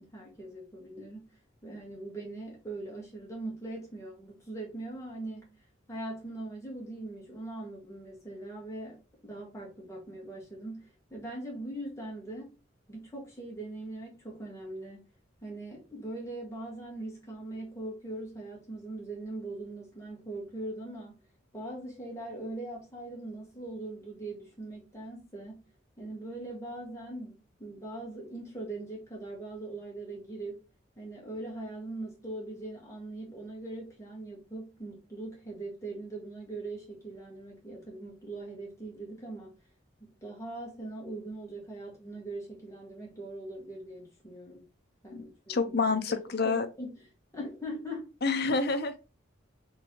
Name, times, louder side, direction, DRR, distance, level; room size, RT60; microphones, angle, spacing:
voice 1, 0.0-1.3 1.6-5.5 5.9-9.0 9.2-12.5 12.9-15.0 15.4-21.1 21.5-25.7 26.0-30.6 31.0-39.5 40.0-44.6 45.0-45.8 46.1-46.2 46.4-47.0 47.3-48.1, right 2 dB, 15° left, 1.6 m, -41 dB
voice 2, 45.5-46.7 48.2-49.0, left 4 dB, 55° left, 0.6 m, -28 dB
3.9 x 3.4 x 3.0 m
head